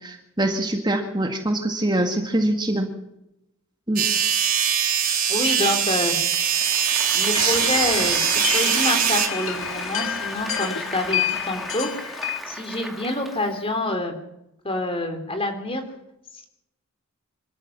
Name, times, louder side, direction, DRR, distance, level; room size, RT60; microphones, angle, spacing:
voice 1, 0.0-2.9 3.9-4.0 5.0-5.2, right 1 dB, 20° right, 4 dB, 1.9 m, -24 dB
sound 1, 4.0-9.3, right 8 dB, 40° right, 3.0 m, -22 dB
voice 2, 5.3-6.2 7.1-11.9 12.5-14.1 14.6-15.8, left 1 dB, 25° left, 5 dB, 3.4 m, -27 dB
Applause, 6.3-13.7, right 1 dB, ahead, 2.3 m, -36 dB
sound 2, 7.3-12.4, left 9 dB, 65° left, 1.6 m, -29 dB
26.0 x 14.0 x 7.2 m, 0.85 s
head